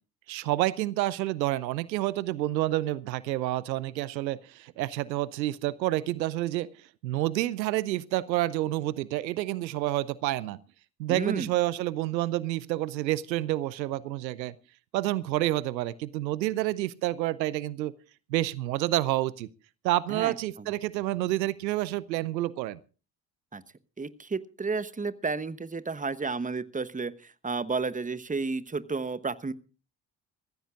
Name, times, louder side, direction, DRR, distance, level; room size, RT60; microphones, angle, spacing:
voice 1, 0.3-6.7 7.0-10.6 11.0-14.5 14.9-17.9 18.3-19.5 19.8-22.8, right 15 dB, 85° right, 0.6 m, -29 dB
voice 2, 11.1-11.5 20.1-20.7 23.5-23.6 24.0-29.5, right 4 dB, 15° right, 1.1 m, -32 dB
24.0 x 15.0 x 2.5 m
hypercardioid pair, 45°, 50 cm